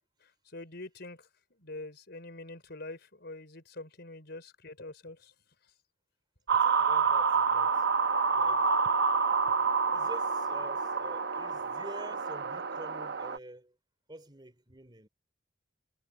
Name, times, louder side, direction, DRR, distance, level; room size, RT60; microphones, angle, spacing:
voice 1, 0.2-1.3 1.6-5.3 8.9-9.0, left 2 dB, 55° left, 5.5 m, -45 dB
voice 2, 6.5-7.8 8.3-8.8 9.9-13.8 14.1-15.1, right 1 dB, 25° right, 3.6 m, -48 dB
sound 1, 6.5-13.4, right 5 dB, 60° right, 1.0 m, -28 dB
head